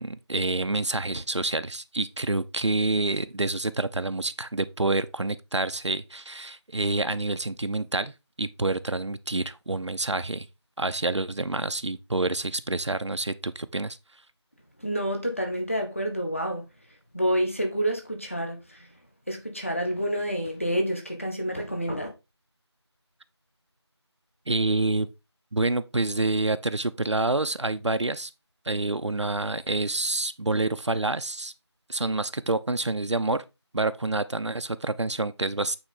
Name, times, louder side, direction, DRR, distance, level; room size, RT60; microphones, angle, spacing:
voice 1, 0.0-8.1 8.4-10.5 10.8-14.0 24.5-25.1 25.5-28.3 28.7-31.5 31.9-33.4 33.7-35.8, right 2 dB, 85° right, 0.7 m, -27 dB
voice 2, 14.8-16.6 17.1-18.9 19.3-22.1, equal, 30° left, 1.3 m, -28 dB
8.9 x 3.9 x 3.7 m
figure-of-eight pair, 180°, 15 cm